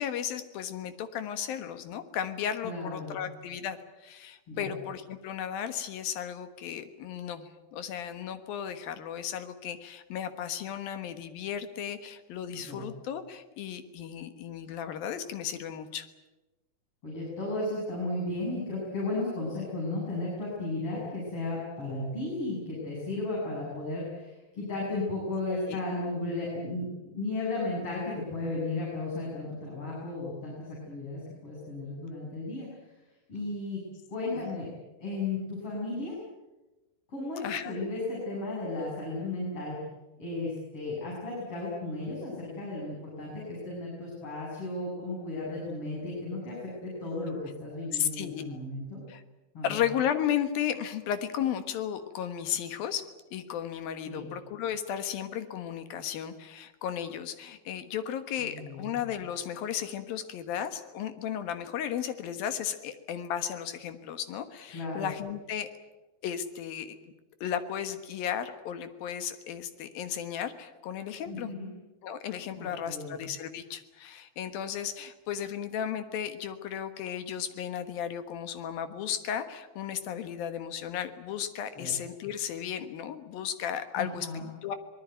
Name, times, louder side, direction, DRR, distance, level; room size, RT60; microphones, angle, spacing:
voice 1, 0.0-16.1 25.5-25.8 34.3-34.5 37.4-37.8 47.9-48.6 49.1-49.2 49.6-65.7 66.2-67.0 67.4-71.5 72.0-84.3 84.6-84.8, left 9 dB, 80° left, 9 dB, 3.2 m, -34 dB
voice 2, 2.6-3.2 4.5-4.7 12.5-12.8 17.0-32.7 33.3-33.8 34.1-34.7 35.0-36.2 37.1-39.8 40.2-49.0 49.5-49.8 54.1-54.3 58.4-58.9 64.7-65.1 71.3-71.7 72.5-73.2 81.8-81.9 84.0-84.5, left 2 dB, 40° left, -5 dB, 8.4 m, -34 dB
25.0 x 20.0 x 9.3 m, 1.1 s
omnidirectional pair, 4.2 m